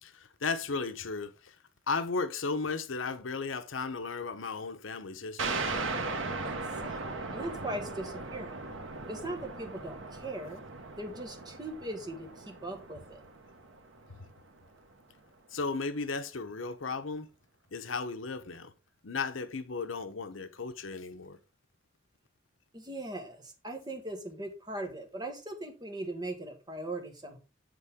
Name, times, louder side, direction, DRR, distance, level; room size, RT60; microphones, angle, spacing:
voice 1, 0.0-1.5 1.9-5.6 15.5-17.3 17.7-18.7 19.0-21.4, left 4 dB, 80° left, 0.9 m, -35 dB
sound 1, 5.4-14.6, right 3 dB, 80° right, 1.4 m, -38 dB
voice 2, 6.4-8.5 9.1-10.6 11.0-13.2 22.7-27.4, right 1 dB, 20° right, 1.5 m, -40 dB
7.8 x 7.1 x 3.6 m
head